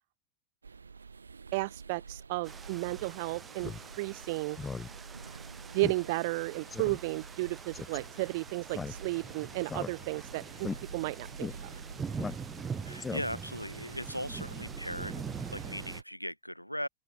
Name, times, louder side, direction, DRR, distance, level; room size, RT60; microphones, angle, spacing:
sound 1, 0.6-16.0, right 5 dB, 75° right, 2.6 m, -48 dB
voice 1, 1.5-4.6 5.7-11.7, right 23 dB, 50° right, 0.6 m, -33 dB
sound 2, 2.4-16.0, right 6 dB, 15° right, 3.2 m, -44 dB
Speech synthesizer, 3.6-3.8 4.2-4.3 4.6-4.9 5.2-5.3 5.8-6.0 6.3-6.4 6.7-7.0 7.7-8.0 8.7-9.3 9.6-10.2 10.6-10.8 11.4-11.5 12.2-12.7 13.0-13.5, left 4 dB, 15° left, 0.3 m, -38 dB
voice 2, 12.8-15.2 15.5-16.9, equal, 90° left, 1.1 m, -38 dB
open air
figure-of-eight pair, 90°, 0 cm